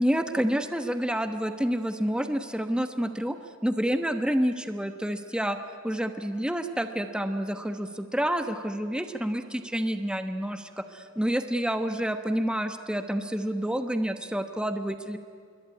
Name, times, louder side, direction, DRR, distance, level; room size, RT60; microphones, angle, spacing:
voice 1, 0.0-3.4 3.6-5.6 5.8-15.2, equal, 5° right, 8 dB, 1.1 m, -28 dB
27.0 x 22.5 x 9.7 m, 2.5 s
head